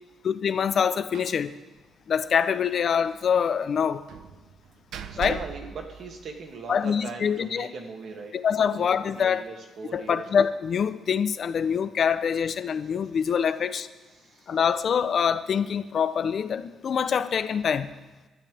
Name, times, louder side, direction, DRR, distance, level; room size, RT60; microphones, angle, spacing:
voice 1, 0.2-1.6 2.1-4.0 5.2-5.4 6.7-7.7 8.3-9.4 9.9-13.9 14.5-17.9, left 7 dB, 50° left, 12 dB, 0.8 m, -25 dB
Slam, 1.1-1.5 1.7-1.8 2.2-2.3 4.1-6.7, right 8 dB, 80° right, 0.9 m, -41 dB
voice 2, 5.1-10.2 14.2-14.6, right 4 dB, 60° right, 2 dB, 2.5 m, -40 dB
26.0 x 13.0 x 3.5 m, 1.2 s
cardioid pair, 140°, 0 cm